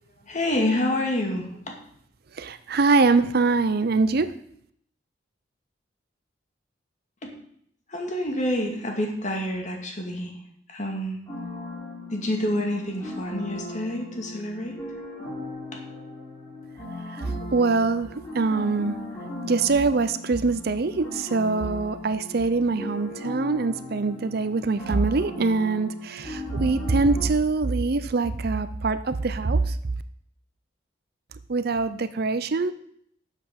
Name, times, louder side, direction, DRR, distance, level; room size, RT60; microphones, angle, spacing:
voice 1, 0.3-1.8 7.2-7.3 7.9-10.3 10.7-11.2 12.1-14.8, left 1 dB, 40° left, 2 dB, 2.2 m, -28 dB
voice 2, 2.4-4.3 17.2-19.0 19.4-29.8 31.5-32.7, right 3 dB, 55° right, 13 dB, 0.6 m, -23 dB
sound 1, 11.3-27.3, left 1 dB, 20° left, 3.9 m, -38 dB
12.0 x 7.5 x 5.2 m, 0.68 s
head